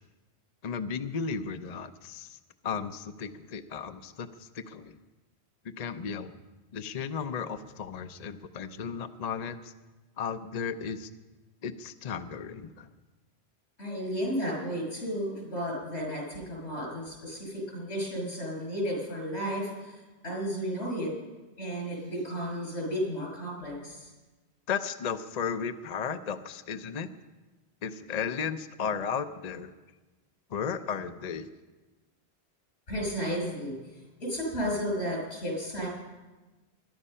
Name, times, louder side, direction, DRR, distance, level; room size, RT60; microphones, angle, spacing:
voice 1, 0.6-2.4 2.6-5.0 5.8-6.4 6.7-9.7 10.2-11.1 11.6-12.9 24.7-27.1 27.8-29.7 30.5-31.5, left 6 dB, 45° left, 9 dB, 0.6 m, -34 dB
voice 2, 13.8-21.1 21.6-24.1 32.9-35.9, equal, 85° left, -1 dB, 6.7 m, -33 dB
21.5 x 11.0 x 5.5 m, 1.2 s
omnidirectional pair, 1.1 m